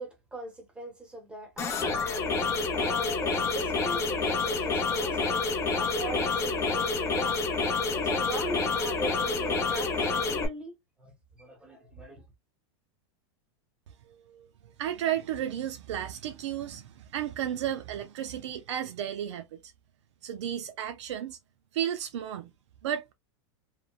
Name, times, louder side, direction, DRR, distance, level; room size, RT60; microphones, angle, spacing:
voice 1, 0.0-7.4 7.8-12.2, right 1 dB, 5° right, 1.0 m, -41 dB
sound 1, 1.6-10.5, left 4 dB, 20° left, 0.6 m, -28 dB
voice 2, 14.1-14.5 14.8-19.7 20.2-21.4 21.7-22.5 22.8-23.1, right 10 dB, 90° right, 0.4 m, -33 dB
3.1 x 2.0 x 2.3 m
supercardioid pair, 150°, 14 cm